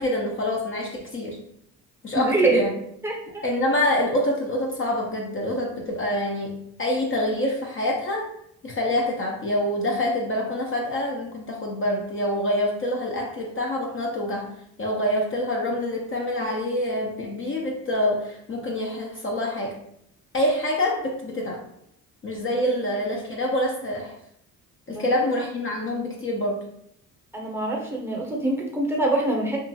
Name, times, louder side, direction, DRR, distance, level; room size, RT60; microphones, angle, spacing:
voice 1, 0.0-1.4 2.0-2.7 3.4-8.3 8.6-14.5 14.8-19.8 20.3-21.6 22.2-24.2 24.9-26.6, left 1 dB, 30° left, -1 dB, 0.5 m, -26 dB
voice 2, 2.1-2.6 3.0-3.4 24.9-25.0 27.3-29.6, right 2 dB, 5° right, -2 dB, 0.7 m, -24 dB
2.7 x 2.4 x 2.7 m, 0.74 s
supercardioid pair, 75°, 40 cm